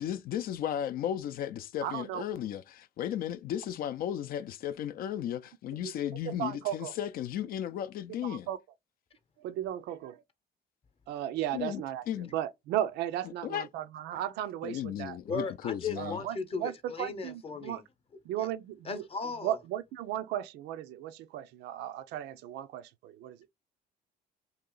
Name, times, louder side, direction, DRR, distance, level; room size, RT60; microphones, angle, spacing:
voice 1, 0.0-8.5 11.5-12.3 13.4-13.7 14.6-16.2, left 10 dB, 60° left, 0.4 m, -35 dB
voice 2, 1.8-2.2 5.8-5.9 6.2-6.9 8.2-8.6 9.4-10.2 11.1-12.0 12.3-15.5 16.0-17.8 18.2-19.1 19.4-23.4, right 12 dB, 85° right, 0.5 m, -35 dB
voice 3, 15.3-17.8 18.4-18.5 18.8-19.6, left 5 dB, 35° left, 0.8 m, -36 dB
2.9 x 2.9 x 3.8 m
cardioid pair, 110°, 17 cm